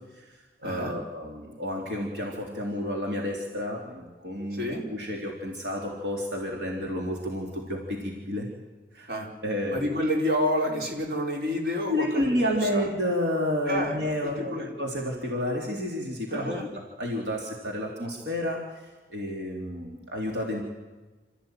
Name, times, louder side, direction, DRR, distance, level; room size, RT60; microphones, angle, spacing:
voice 1, 0.1-8.5 8.9-9.1 9.4-9.8 11.9-16.6 17.0-20.6, left 1 dB, 85° right, -1 dB, 3.7 m, -30 dB
voice 2, 0.6-1.0 4.5-4.8 9.1-9.3 9.7-12.9 13.7-14.7 16.3-16.7, equal, 70° right, 0 dB, 4.5 m, -29 dB
27.5 x 14.5 x 9.3 m, 1.3 s
head